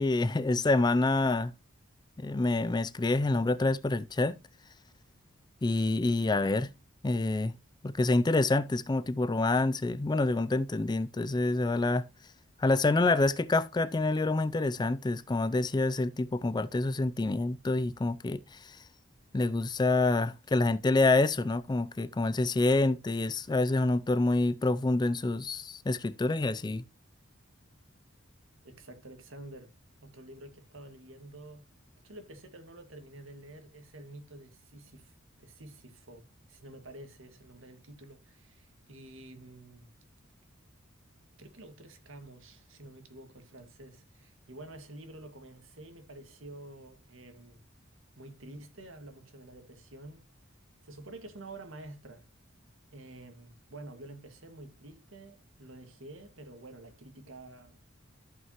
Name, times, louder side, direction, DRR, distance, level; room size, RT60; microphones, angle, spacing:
voice 1, 0.0-1.5 2.2-4.4 5.6-6.7 7.0-7.5 7.8-12.0 12.6-18.4 18.7-18.8 19.3-26.8, left 2 dB, 20° left, 0.4 m, -27 dB
voice 2, 28.6-29.7 30.0-31.6 32.0-39.9 41.4-47.6 48.2-50.2 50.8-52.3 52.9-57.8, right 2 dB, 85° right, 1.9 m, -49 dB
14.5 x 5.6 x 3.0 m
head